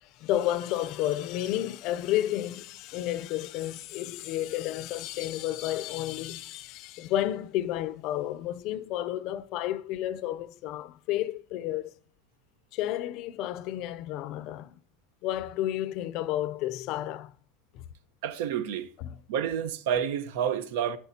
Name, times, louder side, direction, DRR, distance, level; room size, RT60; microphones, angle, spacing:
voice 1, 0.0-11.9 12.7-14.7 15.2-17.3 17.7-17.8 19.0-19.2, left 13 dB, 50° left, 0.5 m, -31 dB
voice 2, 18.2-18.9 19.3-21.0, right 9 dB, 80° right, 1.0 m, -29 dB
10.5 x 8.1 x 2.8 m
supercardioid pair, 160°, 0 cm